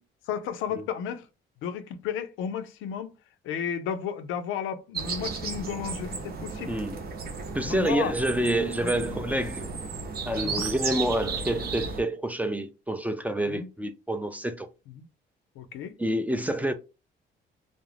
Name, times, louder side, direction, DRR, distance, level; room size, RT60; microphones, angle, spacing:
voice 1, 0.3-1.3 1.6-3.1 3.4-6.7 7.7-8.1 8.8-8.9 10.4-10.7 13.5-13.7 14.9-15.1 15.6-16.0, left 8 dB, 85° left, 0.4 m, -33 dB
sound 1, 4.9-12.0, right 4 dB, 50° right, 0.6 m, -34 dB
voice 2, 6.7-7.0 7.5-9.7 10.3-14.7 16.0-16.7, right 1 dB, 10° right, 0.3 m, -28 dB
2.4 x 2.0 x 3.1 m
cardioid pair, 90°, 20 cm